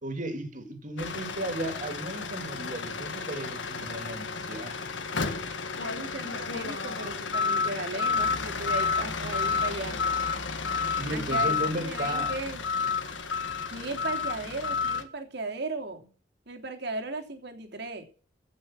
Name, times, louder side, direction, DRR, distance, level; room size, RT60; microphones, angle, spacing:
voice 1, 0.0-4.7 11.0-12.3, right 1 dB, 45° right, 2.9 m, -35 dB
sound 1, 1.0-15.0, left 5 dB, 90° left, 1.8 m, -31 dB
voice 2, 5.8-10.0 11.1-12.6 13.7-16.1 16.5-18.0, right 3 dB, 65° right, 3.0 m, -36 dB
16.0 x 6.4 x 7.5 m
head